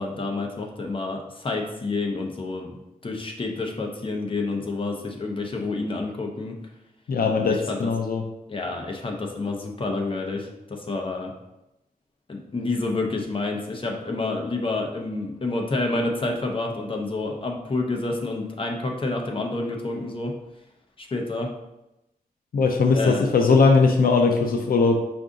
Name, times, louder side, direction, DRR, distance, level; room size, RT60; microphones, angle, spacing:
voice 1, 0.0-6.6 7.5-7.9 8.5-11.3 12.3-20.3 21.0-21.5 22.9-23.4, left 3 dB, 35° left, 2 dB, 0.7 m, -29 dB
voice 2, 7.1-8.2 22.5-25.0, left 4 dB, 80° left, 3 dB, 0.5 m, -19 dB
4.7 x 2.6 x 3.6 m, 0.91 s
wide cardioid pair, 105°, 15 cm